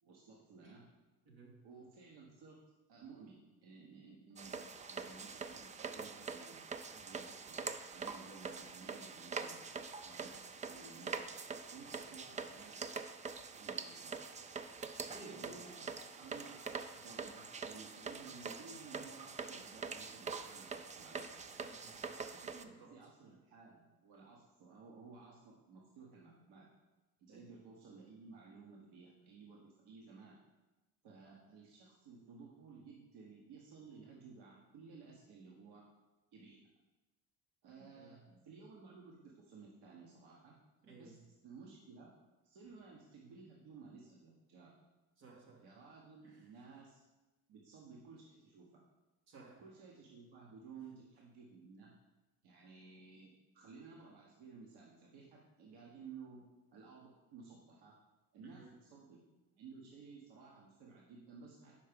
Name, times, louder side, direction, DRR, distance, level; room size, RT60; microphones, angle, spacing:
voice 1, 0.0-0.8 1.6-2.6 2.9-7.6 7.9-9.6 10.0-11.2 11.7-12.8 13.5-14.2 15.3-21.3 22.1-26.6 27.2-29.6 29.8-30.3 31.0-35.8 36.3-36.6 37.6-38.2 38.4-40.5 40.9-41.2 41.4-42.1 42.4-44.7 45.6-47.0 47.5-48.7 49.6-51.9 52.4-56.4 56.7-58.0 58.3-59.2 59.5-61.8, right 4 dB, 70° right, -2 dB, 1.2 m, -56 dB
sound 1, 4.4-22.6, right 5 dB, 20° right, 0.3 m, -45 dB
voice 2, 15.1-15.9 21.5-22.0 22.6-22.9 27.3-27.5 37.8-38.4 40.8-41.2 45.2-45.6 46.2-46.4 49.3-49.6 58.4-58.7, right 3 dB, 85° right, -3 dB, 1.8 m, -56 dB
5.3 x 4.7 x 5.2 m, 1.1 s
supercardioid pair, 70°, 42 cm